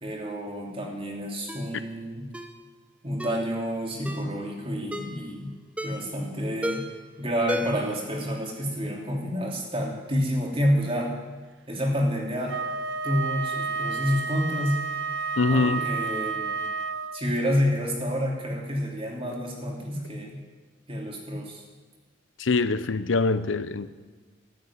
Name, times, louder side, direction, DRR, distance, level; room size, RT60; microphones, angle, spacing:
voice 1, 0.0-2.3 3.0-5.5 5.8-6.8 7.2-11.1 11.7-12.6 13.0-14.8 15.5-16.6 17.1-20.4 20.9-21.6, equal, 30° right, 0 dB, 2.8 m, -28 dB
Ringtone, 1.5-1.7 2.3-2.6 3.2-3.4 4.0-4.3 4.9-5.2 5.8-6.1 6.6-7.0 7.5-7.9 8.2-8.3, equal, 5° right, 1.0 m, -33 dB
Wind instrument woodwind instrument, 12.5-17.4, right 4 dB, 75° right, 0.8 m, -31 dB
voice 2, 15.4-15.9 22.4-24.0, left 3 dB, 80° left, 13 dB, 0.7 m, -24 dB
14.0 x 8.8 x 10.0 m, 1.3 s
head